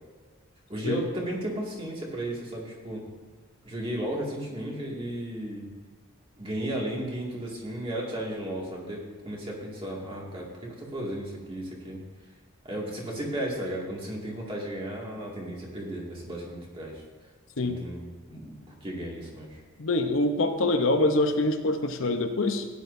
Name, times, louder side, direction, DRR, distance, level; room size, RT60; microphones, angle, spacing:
voice 1, 0.7-3.0 3.6-5.6 6.4-12.0 12.6-17.0 17.6-19.6, right 1 dB, 25° right, -3 dB, 2.2 m, -34 dB
voice 2, 19.8-22.7, left 2 dB, 65° left, 6 dB, 0.8 m, -25 dB
16.5 x 10.5 x 2.7 m, 1.3 s
head